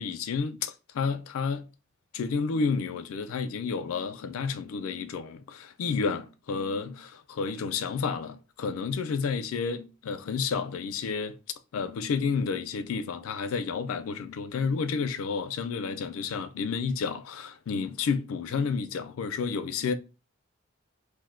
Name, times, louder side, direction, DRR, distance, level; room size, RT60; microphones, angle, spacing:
voice 1, 0.0-1.6 2.1-11.4 11.7-19.9, left 5 dB, 90° left, 0.4 m, -31 dB
2.5 x 2.1 x 3.6 m
head